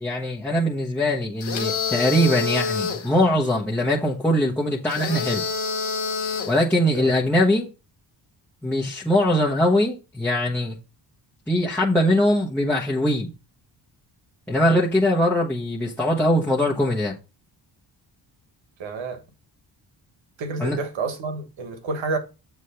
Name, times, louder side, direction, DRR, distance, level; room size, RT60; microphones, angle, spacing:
voice 1, 0.0-5.4 6.5-7.7 8.6-10.7 11.5-13.3 14.5-17.1 20.6-20.8, left 1 dB, 5° left, 1.1 m, -21 dB
sound 1, 1.4-3.1 4.9-6.6, left 5 dB, 85° left, 1.6 m, -27 dB
voice 2, 18.8-19.2 20.4-22.2, right 4 dB, 85° right, 1.4 m, -29 dB
7.3 x 3.2 x 5.6 m
cardioid pair, 105°, 45 cm